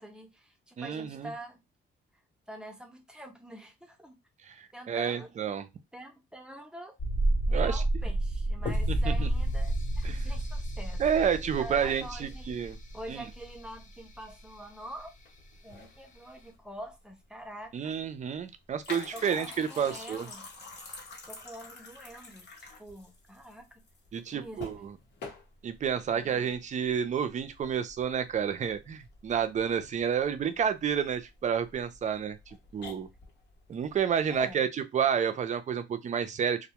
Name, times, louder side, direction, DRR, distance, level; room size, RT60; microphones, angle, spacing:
voice 1, 0.0-1.6 2.5-4.2 4.7-5.3 5.9-7.0 7.5-11.0 11.6-15.1 15.6-18.0 19.1-20.5 21.2-23.8 24.3-24.7 26.1-26.4 34.3-34.6, right 1 dB, 5° right, 0.7 m, -45 dB
voice 2, 0.8-1.3 4.4-5.7 7.5-7.8 8.9-9.3 10.0-10.2 11.0-12.8 13.1-13.2 17.7-20.3 24.1-24.9 25.6-33.1 33.7-34.7 34.9-36.6, right 7 dB, 40° right, 0.4 m, -30 dB
sound 1, 7.0-13.8 14.1-14.2, right 1 dB, 40° left, 0.5 m, -30 dB
sound 2, 15.0-34.5, left 3 dB, 60° left, 0.9 m, -49 dB
2.2 x 2.1 x 2.8 m
cardioid pair, 90°, 20 cm